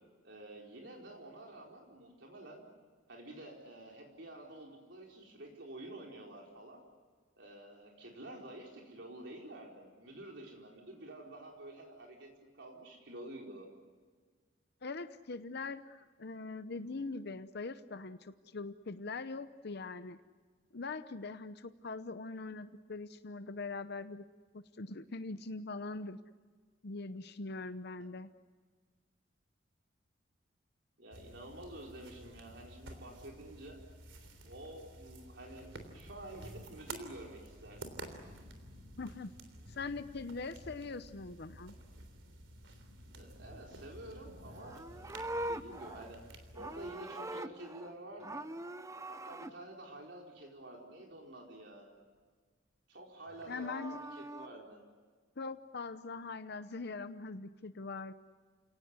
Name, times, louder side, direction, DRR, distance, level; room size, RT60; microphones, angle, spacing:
voice 1, 0.2-2.7 3.1-6.8 7.4-12.3 12.5-13.7 31.0-33.8 34.4-38.0 43.1-46.2 46.5-48.5 49.1-51.9 52.9-54.8, right 1 dB, 65° right, 0 dB, 4.5 m, -49 dB
voice 2, 14.8-20.2 20.7-24.2 24.5-26.2 26.8-28.3 39.0-39.3 39.7-41.7 53.5-54.0 55.4-58.1, left 3 dB, 60° left, 11 dB, 0.8 m, -42 dB
sound 1, 31.1-46.9, right 2 dB, 80° right, 3.5 m, -51 dB
Livestock farm animals working animals, 44.5-47.9 48.2-49.5 53.3-54.5, right 1 dB, 15° right, 0.8 m, -43 dB
29.5 x 18.5 x 9.6 m, 1.5 s
head